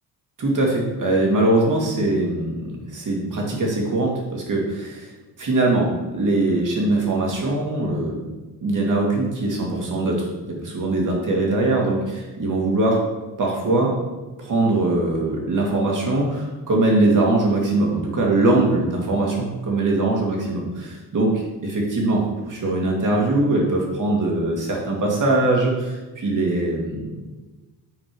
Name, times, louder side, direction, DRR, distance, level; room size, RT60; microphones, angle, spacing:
voice 1, 0.4-5.1 5.4-8.2 8.6-13.1 13.4-14.0 14.4-27.2, right 2 dB, 45° right, -1 dB, 2.3 m, -22 dB
7.6 x 4.3 x 4.8 m, 1.2 s
cardioid pair, 90°, 42 cm